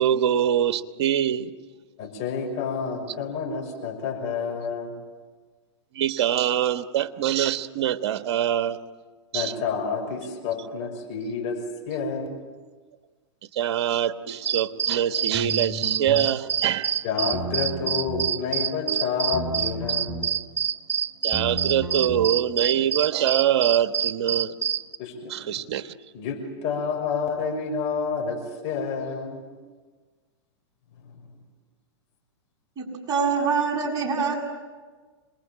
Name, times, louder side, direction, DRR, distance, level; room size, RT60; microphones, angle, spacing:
voice 1, 0.0-1.5 5.9-8.8 9.3-9.5 13.5-17.0 21.2-24.5 25.3-25.9, right 10 dB, 65° right, 10 dB, 1.3 m, -24 dB
voice 2, 2.0-4.9 9.3-11.6 11.9-12.4 17.0-20.2 25.0-25.6 26.1-29.4 31.0-31.1, left 5 dB, 45° left, 3 dB, 6.1 m, -29 dB
sound 1, 14.3-25.0, right 8 dB, 80° right, 1.1 m, -26 dB
sound 2, 15.3-16.3 17.3-18.3 19.3-20.3 21.3-22.3, right 1 dB, 10° right, 3.3 m, -33 dB
voice 3, 32.8-34.3, right 5 dB, 25° right, 0 dB, 7.6 m, -25 dB
27.0 x 21.0 x 8.9 m, 1.4 s
hypercardioid pair, 115°, 15 cm